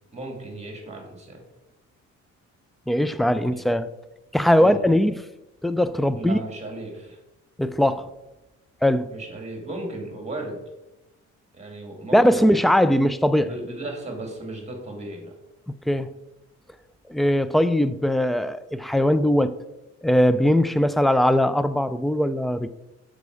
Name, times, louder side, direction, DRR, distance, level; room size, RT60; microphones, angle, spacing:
voice 1, 0.1-1.4 3.2-3.6 4.5-4.8 6.1-7.2 9.1-10.6 11.5-12.6 13.5-15.3, right 2 dB, 20° right, 2.7 m, -35 dB
voice 2, 2.9-3.9 4.3-5.2 5.6-6.4 7.6-8.1 8.8-9.1 12.1-13.5 15.9-16.1 17.1-19.6 20.0-22.7, equal, ahead, 0.3 m, -20 dB
6.8 x 5.1 x 4.8 m
cardioid pair, 90°, 30 cm